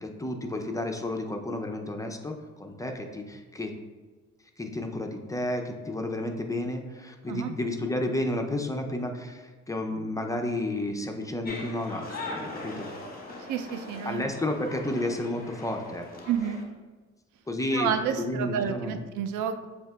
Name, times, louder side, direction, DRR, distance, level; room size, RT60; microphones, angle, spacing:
voice 1, 0.0-3.7 4.6-12.9 14.1-16.0 17.5-17.9 18.2-19.0, left 1 dB, 10° left, 3 dB, 0.4 m, -31 dB
sound 1, 11.4-16.6, left 2 dB, 30° left, 1.0 m, -40 dB
voice 2, 13.5-14.2 16.3-16.6 17.7-19.7, right 8 dB, 80° right, 9 dB, 0.5 m, -30 dB
7.8 x 2.8 x 2.3 m, 1.3 s
cardioid pair, 90°, 30 cm